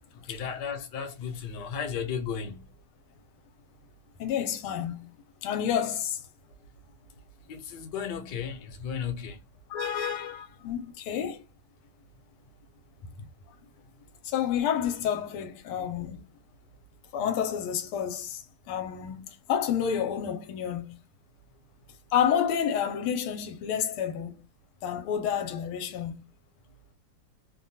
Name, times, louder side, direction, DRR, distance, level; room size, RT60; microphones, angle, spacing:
voice 1, 0.2-2.7 7.5-9.4, left 7 dB, 65° left, 1.2 m, -34 dB
voice 2, 4.2-5.1 5.4-6.2 9.7-11.4 14.2-16.2 17.1-18.4 18.7-19.2 19.5-21.0 22.1-24.4 24.8-26.1, left 8 dB, 90° left, 1.5 m, -29 dB
3.4 x 2.2 x 2.6 m
omnidirectional pair, 2.4 m